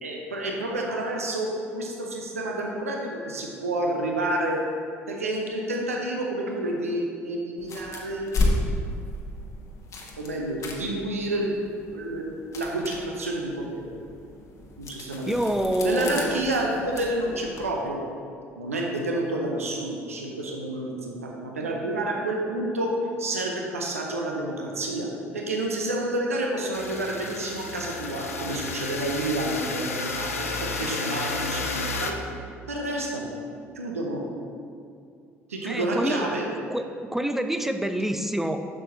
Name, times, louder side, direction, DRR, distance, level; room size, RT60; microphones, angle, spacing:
voice 1, 0.0-4.6 5.1-8.4 10.2-11.5 11.9-13.9 14.8-15.4 15.8-18.0 18.6-32.2 32.7-33.3 33.8-34.2 35.5-36.4, right 1 dB, 80° right, 0 dB, 0.7 m, -29 dB
sound 1, 7.6-17.7, left 2 dB, 45° left, 1.1 m, -33 dB
voice 2, 15.3-16.4 35.7-36.3 36.7-36.9 37.1-38.6, right 1 dB, 5° right, 8 dB, 0.4 m, -26 dB
sound 2, 26.7-32.1, left 3 dB, 80° left, 0.4 m, -32 dB
7.5 x 6.4 x 2.9 m, 2.4 s
figure-of-eight pair, 55°, 8 cm